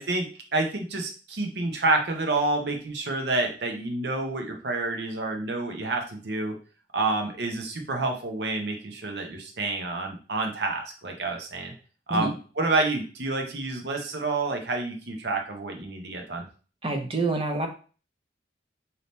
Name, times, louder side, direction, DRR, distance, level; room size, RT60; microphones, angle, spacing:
voice 1, 0.0-6.5 6.9-11.7 12.1-16.4, right 2 dB, 60° right, 3 dB, 0.8 m, -28 dB
voice 2, 16.8-17.7, right 3 dB, 30° right, 4 dB, 0.6 m, -27 dB
3.4 x 2.8 x 4.1 m, 0.37 s
head